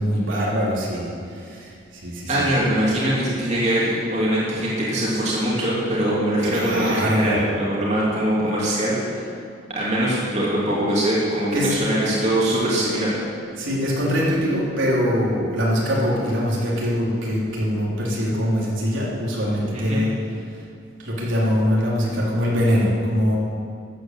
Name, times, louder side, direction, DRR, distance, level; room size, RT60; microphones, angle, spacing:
voice 1, 0.0-2.5 6.4-7.4 11.5-11.8 13.6-20.1 21.0-23.4, equal, 80° right, -6 dB, 3.7 m, -23 dB
voice 2, 2.3-9.3 9.7-13.2 19.7-20.0, right 1 dB, 35° right, -7 dB, 3.1 m, -22 dB
13.0 x 9.3 x 7.8 m, 2.3 s
head